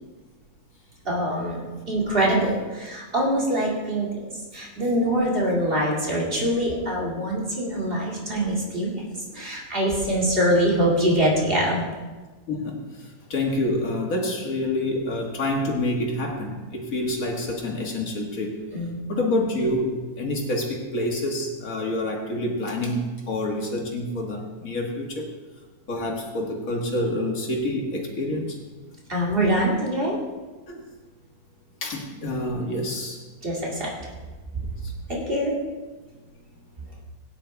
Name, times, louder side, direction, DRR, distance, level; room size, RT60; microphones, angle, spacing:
voice 1, 1.0-4.3 4.5-11.9 18.7-19.0 29.1-30.2 33.4-33.9 35.1-35.5, right 1 dB, 35° right, -4 dB, 2.7 m, -24 dB
voice 2, 12.5-18.6 19.1-25.3 25.9-28.6 30.7-30.8 31.8-33.2 34.8-34.9, left 1 dB, 65° left, 1 dB, 2.1 m, -27 dB
17.0 x 9.6 x 3.4 m, 1.3 s
omnidirectional pair, 1.6 m